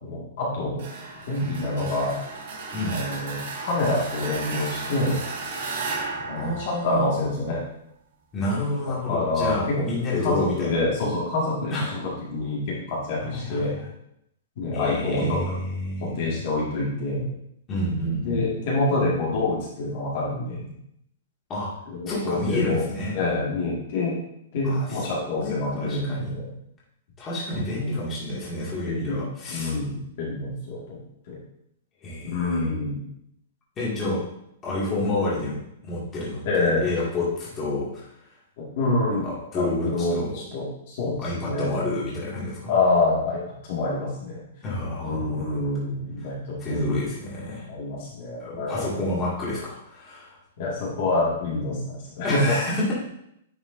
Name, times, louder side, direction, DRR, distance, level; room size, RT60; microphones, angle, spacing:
voice 1, 0.0-0.8 1.3-2.1 2.9-5.2 6.2-7.6 8.9-9.8 10.2-13.7 14.6-15.5 16.0-17.3 18.2-20.7 21.9-22.8 23.1-24.1 24.5-26.5 28.9-29.2 29.5-31.0 31.3-31.4 32.3-33.0 36.5-36.8 38.6-39.3 39.6-41.8 42.7-44.4 45.0-47.0 47.7-49.1 50.6-52.6, left 2 dB, 45° left, -5 dB, 1.9 m, -26 dB
sound 1, 0.8-7.5, right 3 dB, 55° right, 1.7 m, -34 dB
voice 2, 2.7-3.0 6.4-7.2 8.3-10.8 11.7-11.9 13.2-13.9 14.7-16.4 17.7-18.4 21.5-21.7 22.1-23.2 24.6-26.3 27.2-29.7 32.0-32.8 33.8-34.2 34.6-35.6 35.8-38.1 39.2-40.3 41.2-42.7 44.6-45.4 46.2-46.3 46.6-47.7 48.4-50.4 52.2-52.9, left 1 dB, 15° left, -7 dB, 2.1 m, -29 dB
9.7 x 5.1 x 2.6 m, 0.78 s
hypercardioid pair, 170°, 0 cm